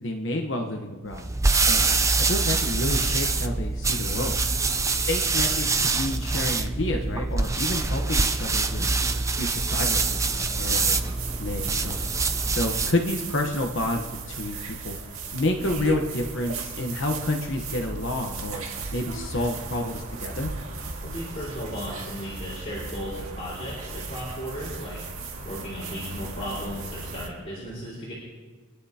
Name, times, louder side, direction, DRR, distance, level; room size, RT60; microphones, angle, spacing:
voice 1, 0.0-1.3 1.7-1.9 2.3-4.3 5.1-8.8 9.4-10.2 10.6-11.0 11.4-12.0 12.5-14.6 14.8-15.0 15.3-18.6 18.9-20.5, left 1 dB, 55° left, 2 dB, 1.1 m, -29 dB
sound 1, 1.1-13.0, right 3 dB, 15° right, 0.5 m, -25 dB
sound 2, 10.5-27.3, right 3 dB, 70° right, 1.9 m, -36 dB
voice 2, 21.0-25.0 25.4-28.1, equal, 30° left, -7 dB, 4.6 m, -36 dB
26.0 x 11.5 x 2.9 m, 1.4 s
head